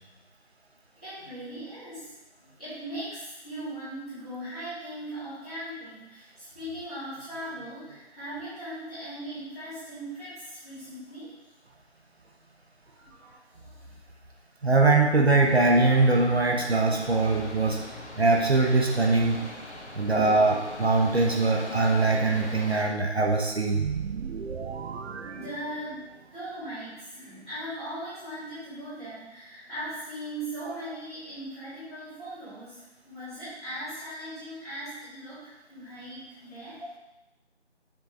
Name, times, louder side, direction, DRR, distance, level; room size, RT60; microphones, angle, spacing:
voice 1, 1.0-11.3 12.9-13.8 19.8-20.3 25.3-26.0 26.3-36.8, right 1 dB, ahead, -30 dB, 2.2 m, -39 dB
voice 2, 14.6-17.8 18.2-19.4 19.9-23.9, right 3 dB, 65° right, 0 dB, 1.0 m, -22 dB
sound 1, 15.4-22.8, left 2 dB, 80° left, 1.4 m, -42 dB
sound 2, 23.7-26.3, right 6 dB, 85° right, 0.5 m, -36 dB
7.4 x 5.0 x 3.5 m, 1.0 s
figure-of-eight pair, 170°, 34 cm